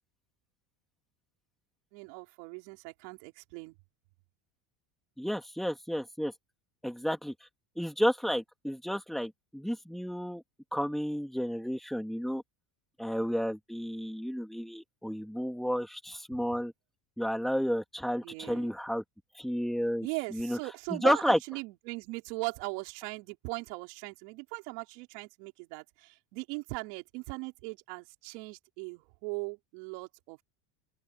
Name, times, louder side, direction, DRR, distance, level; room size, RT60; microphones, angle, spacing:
voice 1, 1.9-3.8 18.2-18.7 20.0-30.4, right 28 dB, 80° right, 4.8 m, -39 dB
voice 2, 5.2-6.3 6.8-7.3 7.8-10.4 10.7-12.4 13.0-16.7 17.2-19.0 19.4-20.1 20.3-20.6 20.9-21.4, equal, ahead, 2.7 m, -31 dB
open air
cardioid pair, 150°, 48 cm